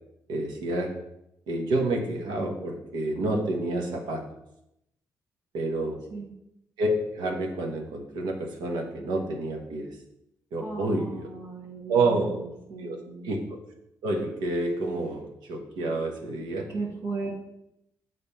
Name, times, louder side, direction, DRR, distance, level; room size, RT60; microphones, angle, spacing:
voice 1, 0.3-0.9 1.5-4.2 5.5-6.0 6.8-10.0 10.5-11.3 11.9-12.4 12.8-13.6 14.0-16.7, right 2 dB, 90° right, 2 dB, 1.2 m, -29 dB
voice 2, 10.6-13.3 16.7-17.3, right 3 dB, 60° right, -4 dB, 1.5 m, -36 dB
7.0 x 4.2 x 4.3 m, 0.82 s
cardioid pair, 75°, 7 cm